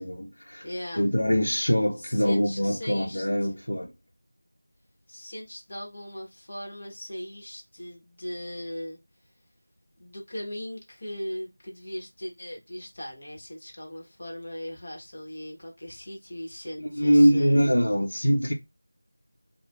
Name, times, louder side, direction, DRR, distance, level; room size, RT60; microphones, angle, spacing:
voice 1, 0.0-0.7 1.0-3.9 16.8-18.5, equal, 85° left, 0.7 m, -23 dB
voice 2, 0.6-1.1 2.0-3.6 5.1-9.0 10.0-17.7, equal, 40° left, 1.1 m, -39 dB
4.6 x 2.1 x 2.3 m
figure-of-eight pair, 175°, 0 cm